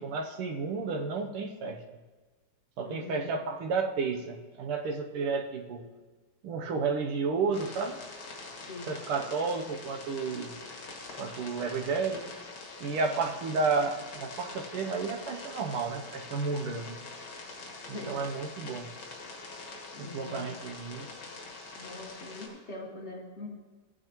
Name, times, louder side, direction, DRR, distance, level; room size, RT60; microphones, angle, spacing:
voice 1, 0.0-1.8 2.8-5.9 6.4-8.0 8.8-10.6 11.2-12.2 12.8-17.0 17.9-18.9 20.0-21.1, right 4 dB, 80° right, 4 dB, 1.8 m, -32 dB
voice 2, 2.8-3.3 8.7-8.9 17.8-18.2 19.9-20.5 21.7-23.5, left 2 dB, 35° left, -1 dB, 1.6 m, -43 dB
sound 1, 7.5-22.5, left 3 dB, 70° left, 2.5 m, -44 dB
16.0 x 8.9 x 3.0 m, 1.3 s
omnidirectional pair, 2.4 m